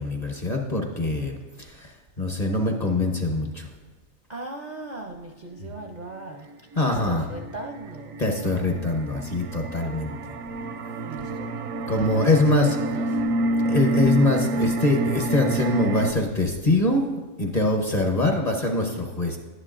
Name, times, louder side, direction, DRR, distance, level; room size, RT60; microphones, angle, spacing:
voice 1, 0.0-1.4 1.7-1.9 2.2-3.7 6.8-7.3 8.2-10.1 11.9-12.8 13.6-17.1 17.4-19.4, left 2 dB, 35° left, 2 dB, 0.8 m, -23 dB
voice 2, 4.3-6.5 6.8-8.2 11.0-11.5 12.0-13.2, right 2 dB, 50° right, 1 dB, 0.5 m, -38 dB
sound 1, 7.2-16.1, right 1 dB, 80° right, 1.0 m, -28 dB
11.5 x 10.0 x 2.5 m, 1.3 s
omnidirectional pair, 1.4 m